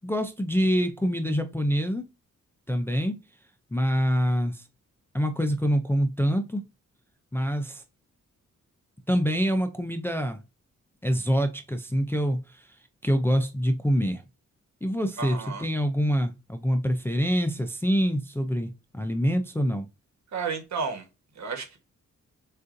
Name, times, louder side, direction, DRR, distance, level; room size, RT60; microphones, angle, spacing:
voice 1, 0.0-2.0 2.7-3.1 3.7-4.6 5.1-6.6 7.3-7.8 9.1-10.4 11.0-12.7 13.0-14.2 14.8-19.9, equal, 10° left, 5 dB, 0.4 m, -25 dB
voice 2, 15.2-15.6 20.3-21.0 21.4-21.8, right 5 dB, 65° right, 5 dB, 1.3 m, -32 dB
6.4 x 2.5 x 2.5 m, 0.26 s
wide cardioid pair, 145°, 30 cm